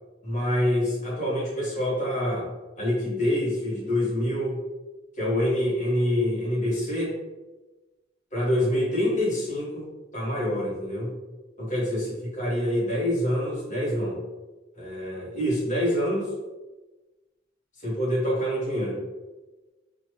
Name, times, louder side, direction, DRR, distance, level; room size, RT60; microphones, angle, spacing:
voice 1, 0.2-2.5 2.8-4.6 5.2-7.1 8.3-11.1 11.6-14.2 14.8-16.3 17.8-19.0, equal, 40° left, -7 dB, 1.2 m, -26 dB
3.0 x 2.4 x 3.0 m, 1.2 s
head